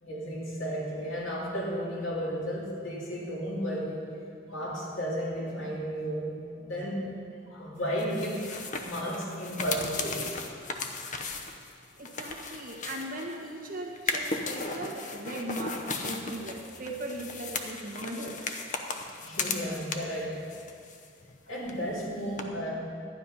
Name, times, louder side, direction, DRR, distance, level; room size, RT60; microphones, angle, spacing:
voice 1, 0.0-4.2 4.5-7.2 7.5-10.4 19.2-20.4 21.5-22.9, equal, 70° left, -5 dB, 3.1 m, -33 dB
sound 1, 8.0-13.5 13.9-20.2 20.5-21.4 21.6-21.7 22.4-22.5, left 4 dB, 35° left, 0.8 m, -36 dB
voice 2, 12.0-18.4, right 1 dB, 40° right, -1 dB, 1.6 m, -38 dB
12.5 x 9.6 x 5.6 m, 2.4 s
head